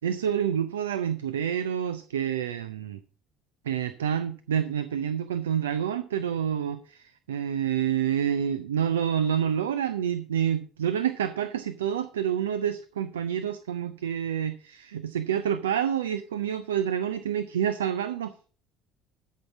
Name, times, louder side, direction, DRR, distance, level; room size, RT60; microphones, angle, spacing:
voice 1, 0.0-3.0 3.6-18.3, right 9 dB, 85° right, 13 dB, 0.5 m, -28 dB
12.5 x 5.6 x 5.9 m, 0.40 s
hypercardioid pair, 60°, 0 cm